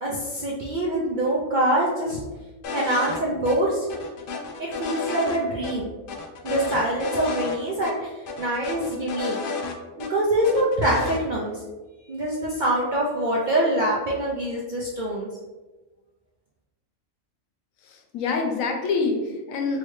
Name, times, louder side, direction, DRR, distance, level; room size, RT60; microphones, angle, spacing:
voice 1, 0.0-2.2 2.7-3.9 4.6-5.9 6.4-8.1 8.4-9.4 10.0-11.6 12.1-15.3, right 1 dB, 60° right, -4 dB, 0.5 m, -24 dB
sound 1, 2.6-3.2 3.4-3.6 3.9-5.4 5.6-5.7 6.1-7.6 7.8-7.9 8.3-10.1 10.4-11.2, left 4 dB, 65° left, 0.5 m, -31 dB
voice 2, 17.8-19.8, left 4 dB, 90° left, 3 dB, 1.0 m, -26 dB
3.2 x 2.8 x 3.1 m, 1.2 s
omnidirectional pair, 1.4 m